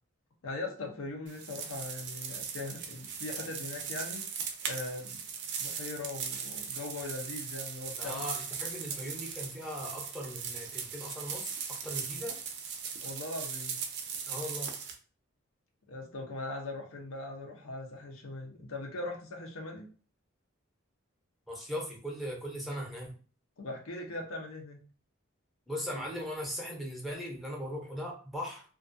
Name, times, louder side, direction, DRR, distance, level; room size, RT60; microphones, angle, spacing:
voice 1, 0.4-4.2 4.6-5.2 5.6-8.2 13.0-13.8 15.9-19.9 23.6-24.8, left 2 dB, 75° left, 1 dB, 0.6 m, -40 dB
sound 1, 1.3-14.9, right 6 dB, 55° right, 0.4 m, -39 dB
voice 2, 8.0-11.5 11.8-12.4 14.3-14.7 21.5-23.2 25.7-28.6, equal, ahead, -2 dB, 0.6 m, -38 dB
2.4 x 2.2 x 2.5 m, 0.40 s
head